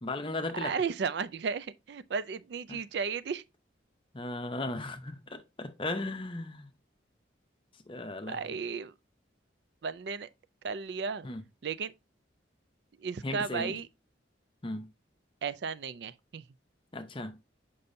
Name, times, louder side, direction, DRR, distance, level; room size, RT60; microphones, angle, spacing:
voice 1, 0.0-0.7 2.7-2.8 4.1-6.7 7.9-8.4 11.2-11.4 13.2-13.7 14.6-14.9 16.9-17.4, left 2 dB, 30° left, 0.7 m, -36 dB
voice 2, 0.5-3.4 8.3-8.9 9.8-10.3 10.6-11.3 11.6-11.9 13.0-13.9 15.4-16.4, right 5 dB, 60° right, 0.4 m, -34 dB
6.9 x 5.4 x 2.6 m
head